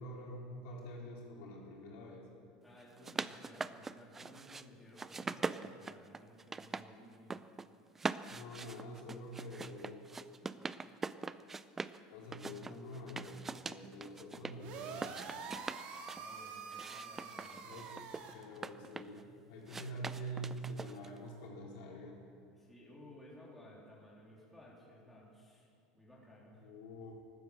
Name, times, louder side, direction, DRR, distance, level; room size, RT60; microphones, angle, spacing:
voice 1, 0.0-2.3 8.3-10.0 12.1-15.3 17.6-18.0 18.3-22.2 26.5-27.1, right 1 dB, 70° left, -2 dB, 4.1 m, -46 dB
voice 2, 2.6-7.5 16.1-17.8 22.5-26.7, left 1 dB, 5° left, -6 dB, 3.0 m, -57 dB
sound 1, 2.8-4.6 5.0-6.9 7.1-7.7 8.0-12.0 12.3-14.5 14.9-16.2 16.7-19.2 19.7-21.2, right 4 dB, 15° right, 0.4 m, -42 dB
sound 2, 14.6-18.3, right 5 dB, 50° right, 2.0 m, -46 dB
15.0 x 12.5 x 6.7 m, 2.2 s
cardioid pair, 155°, 2 cm